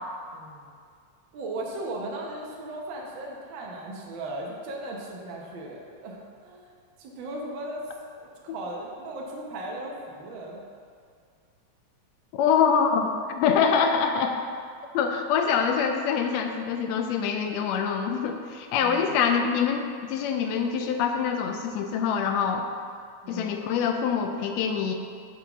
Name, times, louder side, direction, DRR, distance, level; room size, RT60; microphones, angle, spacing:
voice 1, 0.3-0.7 1.3-6.6 7.0-7.8 8.2-10.6 18.8-19.1 23.2-23.6, right 1 dB, 65° right, -2 dB, 1.2 m, -37 dB
voice 2, 12.3-14.4 14.9-22.6 23.3-24.9, left 6 dB, 80° left, 5 dB, 1.5 m, -25 dB
7.2 x 3.8 x 5.9 m, 2.2 s
omnidirectional pair, 3.4 m